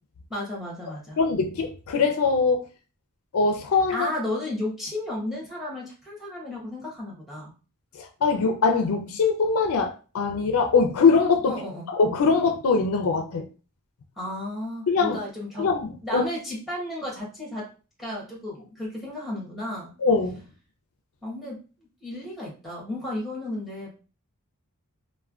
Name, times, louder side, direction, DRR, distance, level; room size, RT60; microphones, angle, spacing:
voice 1, 0.3-1.2 3.9-7.5 11.5-11.9 14.2-17.7 18.0-19.9 21.2-21.6 22.0-23.9, left 1 dB, ahead, 1.1 m, -33 dB
voice 2, 1.2-2.6 3.3-4.1 8.0-11.5 12.0-13.4 14.9-15.2 15.6-16.2 20.0-20.4, left 4 dB, 65° left, 0.4 m, -22 dB
3.3 x 2.2 x 2.4 m
head